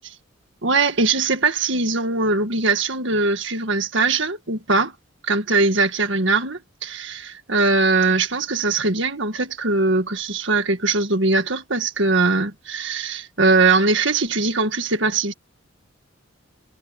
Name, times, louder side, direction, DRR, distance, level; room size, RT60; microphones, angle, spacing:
voice 1, 0.6-4.9 5.2-15.3, right 3 dB, 60° right, 1.9 m, -21 dB
head